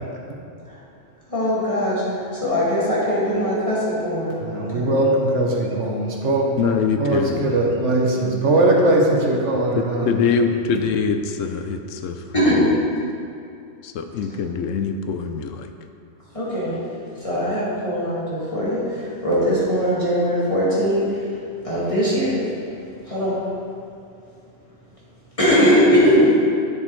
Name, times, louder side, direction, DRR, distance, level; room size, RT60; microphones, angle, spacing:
voice 1, 1.3-4.9 7.4-7.6 12.3-12.6 16.3-16.8 17.2-21.3 21.6-22.4 23.1-23.4 25.4-26.4, equal, 25° left, -8 dB, 2.2 m, -20 dB
voice 2, 4.4-6.6 7.0-10.1, right 2 dB, 70° right, 0 dB, 1.3 m, -20 dB
voice 3, 6.6-7.6 8.6-8.7 9.5-12.8 13.8-15.7, left 6 dB, 85° left, 7 dB, 1.0 m, -24 dB
10.0 x 7.3 x 3.2 m, 2.5 s
omnidirectional pair, 1.3 m